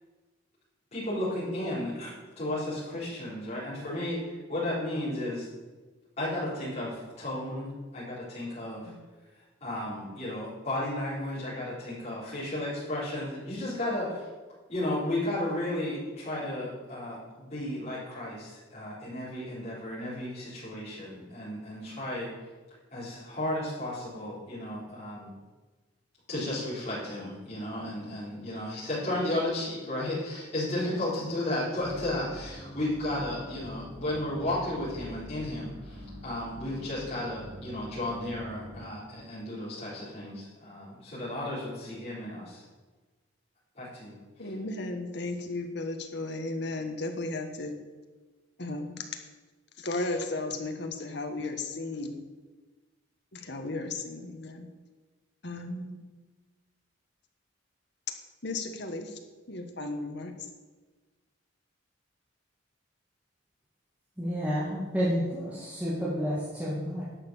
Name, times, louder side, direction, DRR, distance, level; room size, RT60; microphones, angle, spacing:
voice 1, 0.9-5.5 6.2-8.9 9.6-14.3 14.7-22.3 22.9-25.3 26.3-42.6 43.7-44.5, left 1 dB, 30° left, -10 dB, 4.3 m, -34 dB
sound 1, 31.8-38.9, left 1 dB, 85° right, 2.3 m, -45 dB
voice 2, 44.4-47.7 48.6-49.0 49.8-52.2 53.3-54.7 55.4-56.0 58.4-59.2 59.5-60.3, left 2 dB, 55° left, 5 dB, 1.4 m, -35 dB
voice 3, 64.2-67.1, equal, 5° right, -8 dB, 2.0 m, -30 dB
11.0 x 6.6 x 7.1 m, 1.3 s
head